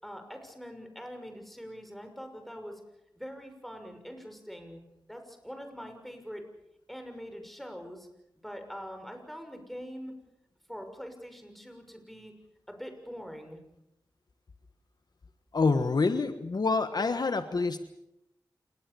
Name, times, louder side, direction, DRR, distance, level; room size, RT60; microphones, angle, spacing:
voice 1, 0.0-2.8 3.1-4.8 5.1-6.4 6.9-8.1 8.4-10.1 10.7-12.3 12.7-13.6, equal, ahead, 5 dB, 6.2 m, -43 dB
voice 2, 15.5-17.8, left 4 dB, 60° left, 9 dB, 1.4 m, -27 dB
28.5 x 20.0 x 7.0 m, 0.84 s
wide cardioid pair, 65°, 8 cm